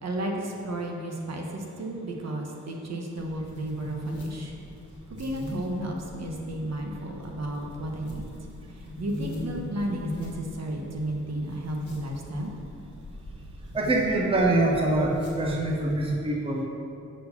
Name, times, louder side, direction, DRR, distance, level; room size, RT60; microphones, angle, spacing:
voice 1, 0.0-4.5 5.2-8.2 8.7-12.5, right 1 dB, 55° right, 1 dB, 1.1 m, -33 dB
sound 1, 3.2-16.0, left 1 dB, 50° left, 1.9 m, -40 dB
voice 2, 13.7-16.7, right 2 dB, 20° right, -1 dB, 0.7 m, -24 dB
6.4 x 4.7 x 6.7 m, 2.7 s
wide cardioid pair, 120°, 31 cm